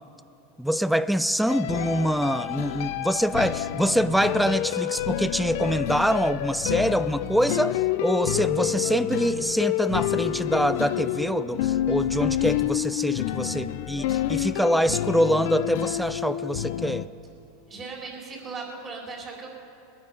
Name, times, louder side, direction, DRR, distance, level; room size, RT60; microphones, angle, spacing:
voice 1, 0.6-17.1, equal, ahead, 14 dB, 0.3 m, -25 dB
sound 1, 1.5-17.0, left 12 dB, 70° left, 0.5 m, -28 dB
voice 2, 17.7-19.5, right 4 dB, 25° right, -2 dB, 3.8 m, -37 dB
21.0 x 9.7 x 5.4 m, 2.8 s
supercardioid pair, 120°, 0 cm